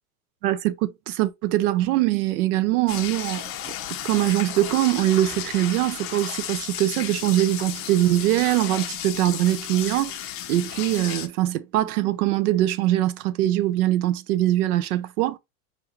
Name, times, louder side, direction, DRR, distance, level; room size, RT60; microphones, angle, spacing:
voice 1, 0.4-3.7 4.0-10.2 10.5-15.4, right 14 dB, 75° right, 0.7 m, -22 dB
sound 1, 2.9-11.3, left 11 dB, 30° left, 0.5 m, -34 dB
5.2 x 2.2 x 3.0 m
supercardioid pair, 120°, 44 cm